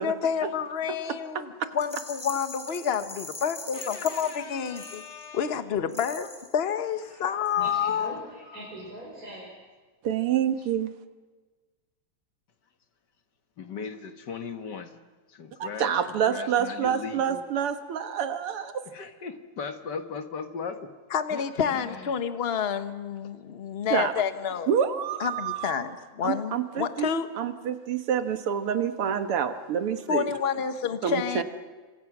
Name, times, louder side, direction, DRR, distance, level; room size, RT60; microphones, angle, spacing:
voice 1, 0.0-5.0 5.3-6.3 6.5-8.1 21.1-24.7 25.2-27.3 30.1-31.4, left 7 dB, 35° left, 10 dB, 1.1 m, -29 dB
Rattle, 1.8-5.4 5.9-6.6, left 2 dB, 5° left, 3.5 m, -42 dB
voice 2, 3.7-5.6 13.6-15.0 15.3-17.4 18.9-20.9 21.3-21.4 21.7-22.2, left 5 dB, 55° left, 8 dB, 1.9 m, -38 dB
voice 3, 7.5-9.5, right 1 dB, 40° right, -4 dB, 5.9 m, -42 dB
voice 4, 10.0-10.9 15.6-18.8 23.9-24.1 24.7-25.8 26.2-27.1 27.4-30.3 31.0-31.4, right 8 dB, 80° right, 9 dB, 2.3 m, -27 dB
28.5 x 25.5 x 6.1 m, 1.3 s
omnidirectional pair, 2.4 m